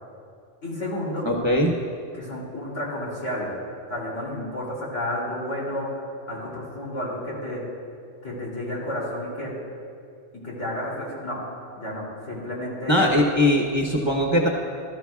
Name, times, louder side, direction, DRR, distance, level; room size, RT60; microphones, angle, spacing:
voice 1, 0.6-1.3 2.1-3.5 3.9-7.6 8.2-9.5 10.3-11.4 11.7-13.2, left 1 dB, 75° left, -5 dB, 3.3 m, -31 dB
voice 2, 1.2-1.7 12.9-14.5, left 1 dB, 25° right, 0 dB, 0.8 m, -20 dB
18.0 x 13.0 x 2.3 m, 2.4 s
omnidirectional pair, 1.3 m